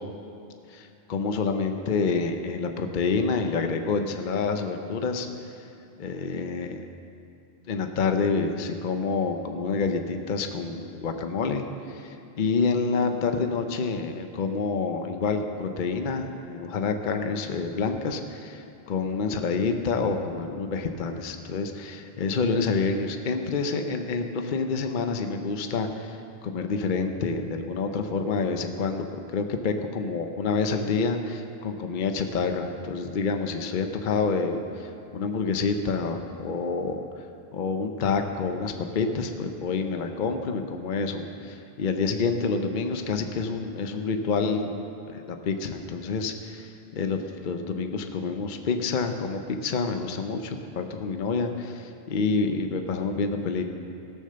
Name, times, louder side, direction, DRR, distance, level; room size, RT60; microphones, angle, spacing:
voice 1, 0.7-5.3 6.0-6.9 7.7-29.1 29.3-37.3 37.5-44.7 45.1-53.7, left 4 dB, 55° left, 6 dB, 0.8 m, -28 dB
17.0 x 6.5 x 6.7 m, 2.7 s
omnidirectional pair, 1.1 m